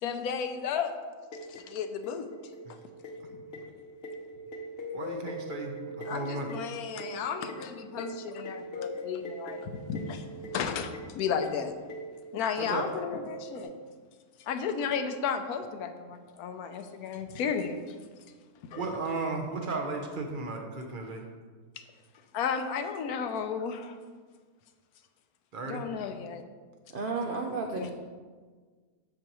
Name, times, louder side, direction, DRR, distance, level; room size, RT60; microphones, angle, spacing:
voice 1, 0.0-0.9 1.5-2.3 2.7-2.8 3.3-3.4 6.0-10.3 10.5-11.7 12.3-13.7 14.4-17.8 18.7-18.8 22.3-24.0 25.6-26.4 27.8-27.9, left 6 dB, 75° left, 8 dB, 1.1 m, -33 dB
sound 1, 1.3-13.6, equal, 50° left, 0.8 m, -42 dB
voice 2, 4.9-6.5 12.6-12.9 18.7-21.2 25.5-25.8, right 3 dB, 45° right, 3 dB, 0.7 m, -34 dB
voice 3, 26.9-27.9, right 3 dB, 90° right, 1 dB, 0.4 m, -32 dB
7.6 x 6.7 x 3.0 m, 1.5 s
omnidirectional pair, 1.7 m